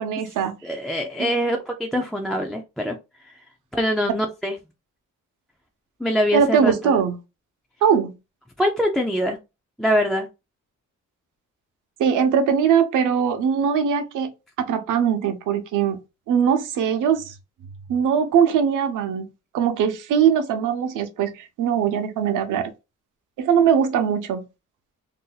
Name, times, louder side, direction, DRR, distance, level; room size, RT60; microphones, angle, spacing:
voice 1, 0.0-0.6 1.2-1.3 6.3-7.2 7.8-8.1 12.0-14.3 14.6-16.0 16.3-17.3 17.9-19.3 19.5-22.7 23.4-24.4, right 7 dB, 75° right, 0.7 m, -21 dB
voice 2, 0.6-3.0 3.2-3.3 3.7-4.6 6.0-6.9 8.6-9.4 9.8-10.3, equal, ahead, 0.3 m, -23 dB
2.6 x 2.2 x 3.9 m
cardioid pair, 145°, 31 cm